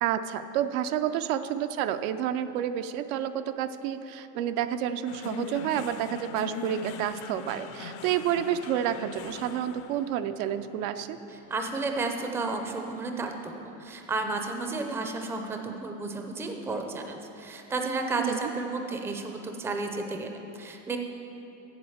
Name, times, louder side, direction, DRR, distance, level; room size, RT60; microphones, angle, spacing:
voice 1, 0.0-11.2 18.2-18.5, right 10 dB, 90° right, 10 dB, 0.6 m, -29 dB
sound 1, 5.1-13.5, left 7 dB, 50° left, 0.5 m, -42 dB
voice 2, 11.5-21.0, right 3 dB, 5° right, 4 dB, 0.4 m, -32 dB
7.8 x 7.0 x 7.1 m, 2.9 s
cardioid pair, 145°, 40 cm